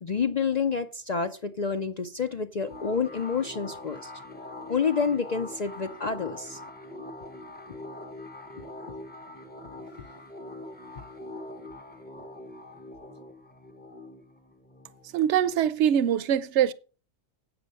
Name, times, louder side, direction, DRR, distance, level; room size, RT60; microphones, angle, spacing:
voice 1, 0.0-4.1 4.7-6.6 11.0-11.1, left 5 dB, 55° left, 0.4 m, -28 dB
sound 1, 2.7-15.9, left 1 dB, 10° left, 0.8 m, -43 dB
voice 2, 15.1-16.7, right 9 dB, 65° right, 0.9 m, -23 dB
8.5 x 6.8 x 6.4 m
omnidirectional pair, 1.4 m